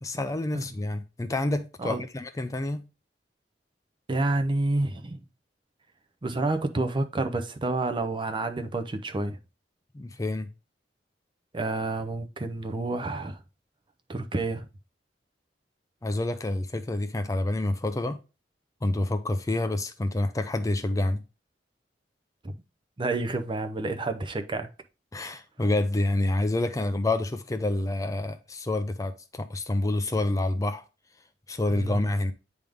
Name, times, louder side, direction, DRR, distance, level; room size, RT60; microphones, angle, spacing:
voice 1, 0.0-2.9 9.9-10.5 16.0-18.2 18.8-21.2 25.1-30.8 31.5-32.3, left 2 dB, 20° left, 0.4 m, -28 dB
voice 2, 4.1-5.2 6.2-9.4 11.5-13.4 14.1-14.7 23.0-24.7 31.7-32.0, right 2 dB, 30° right, 0.6 m, -29 dB
9.0 x 3.5 x 3.5 m
head